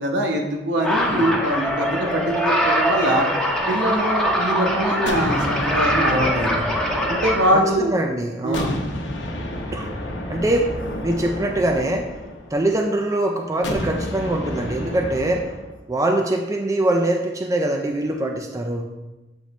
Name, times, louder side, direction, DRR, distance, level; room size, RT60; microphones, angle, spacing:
voice 1, 0.0-3.3 3.7-6.6 7.1-7.9 8.4-8.7, right 1 dB, 70° right, 1 dB, 1.0 m, -23 dB
sound 1, 0.8-7.5, equal, 5° left, 0.8 m, -22 dB
sound 2, 5.1-8.1 8.5-12.8 13.6-15.7, left 1 dB, 70° left, 0.8 m, -30 dB
voice 2, 7.5-8.7 9.7-9.9 10.3-10.7 11.0-12.1 12.5-15.5 15.9-18.9, right 1 dB, 15° right, 2 dB, 0.4 m, -23 dB
7.9 x 3.9 x 3.1 m, 1.1 s
head